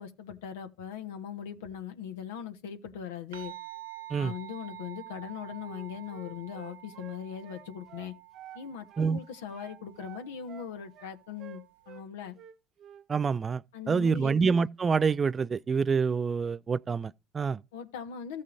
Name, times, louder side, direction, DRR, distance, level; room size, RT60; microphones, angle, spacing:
voice 1, 0.0-3.5 4.1-8.1 8.5-12.3 13.7-14.4 17.7-18.4, left 8 dB, 75° left, 1.2 m, -40 dB
sound 1, 3.3-12.0, right 17 dB, 80° right, 1.9 m, -48 dB
Wind instrument woodwind instrument, 5.6-8.6 8.9-9.2 9.5-12.1 12.3-13.1, right 9 dB, 50° right, 1.1 m, -50 dB
voice 2, 13.1-13.6 13.9-17.6, right 5 dB, 30° right, 0.4 m, -27 dB
15.5 x 6.4 x 2.6 m
figure-of-eight pair, 60°, 0 cm